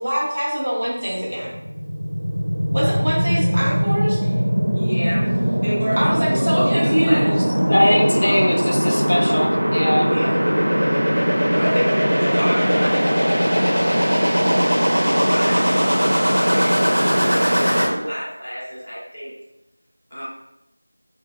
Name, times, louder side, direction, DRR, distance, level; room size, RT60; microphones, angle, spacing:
voice 1, 0.0-1.5 2.7-4.3 6.0-7.4, equal, 40° right, -6 dB, 1.3 m, -23 dB
sound 1, 1.3-17.8, equal, 75° right, 1.4 m, -20 dB
voice 2, 4.7-5.2 5.6-7.3 7.8-8.6 10.0-11.0 11.5-19.3 20.1-20.2, equal, ahead, -26 dB, 1.1 m, -30 dB
voice 3, 7.7-10.1, left 1 dB, 50° left, 1 dB, 0.7 m, -20 dB
4.7 x 2.7 x 3.4 m, 0.89 s
figure-of-eight pair, 180°, 0 cm